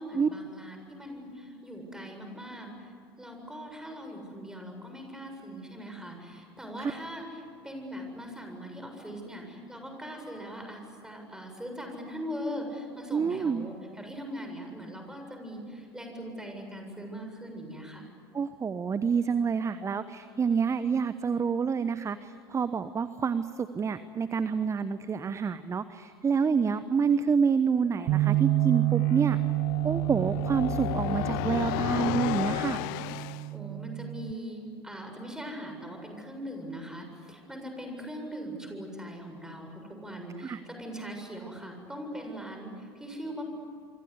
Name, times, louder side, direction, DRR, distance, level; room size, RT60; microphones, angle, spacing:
voice 1, 0.0-18.1 33.5-43.4, equal, 5° right, 3 dB, 7.6 m, -40 dB
voice 2, 13.1-13.7 18.3-29.4 29.8-32.8 40.4-40.6, right 6 dB, 25° right, 13 dB, 1.0 m, -28 dB
sound 1, 28.0-33.5, left 17 dB, 60° left, 0.8 m, -33 dB
Bass guitar, 28.1-34.3, right 19 dB, 50° right, 0.8 m, -29 dB
28.0 x 25.0 x 8.3 m, 2.6 s
figure-of-eight pair, 75°, 13 cm